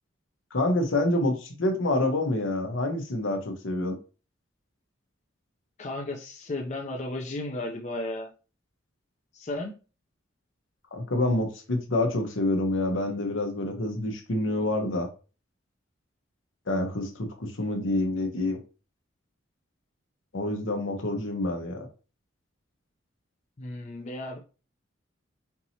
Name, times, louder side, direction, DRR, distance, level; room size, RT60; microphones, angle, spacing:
voice 1, 0.5-4.0 10.9-15.1 16.7-18.6 20.3-21.9, left 1 dB, 75° left, 4 dB, 1.0 m, -27 dB
voice 2, 5.8-8.3 9.3-9.7 23.6-24.4, left 2 dB, 35° left, 0 dB, 0.5 m, -34 dB
4.5 x 2.9 x 2.7 m, 0.34 s
head